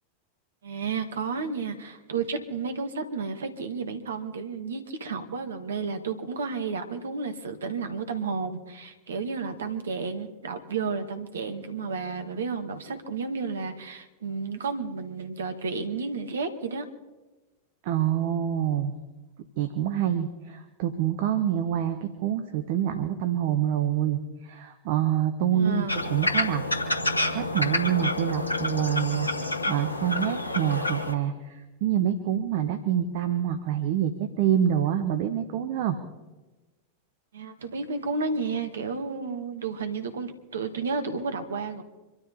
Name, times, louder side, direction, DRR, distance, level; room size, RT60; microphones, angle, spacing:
voice 1, 0.6-16.9 25.5-26.0 37.3-41.8, right 4 dB, 65° right, 8 dB, 1.7 m, -32 dB
voice 2, 17.8-18.9 19.6-26.6 27.3-29.3 29.7-36.0, right 10 dB, 50° right, 8 dB, 1.2 m, -26 dB
sound 1, 25.9-31.1, left 2 dB, 80° left, 1.3 m, -28 dB
25.5 x 12.5 x 4.3 m, 1.1 s
figure-of-eight pair, 90°, 0 cm